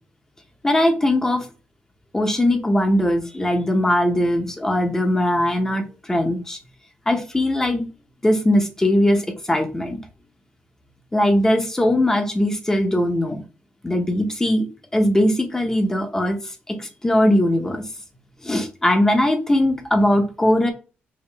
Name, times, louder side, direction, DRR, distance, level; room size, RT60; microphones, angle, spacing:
voice 1, 0.6-1.4 2.1-6.6 7.1-7.9 8.2-10.0 11.1-13.4 13.8-14.7 14.9-16.4 16.7-17.8 18.4-20.7, left 1 dB, 10° left, 5 dB, 0.7 m, -20 dB
4.8 x 2.4 x 3.3 m, 0.34 s
cardioid pair, 125°, 4 cm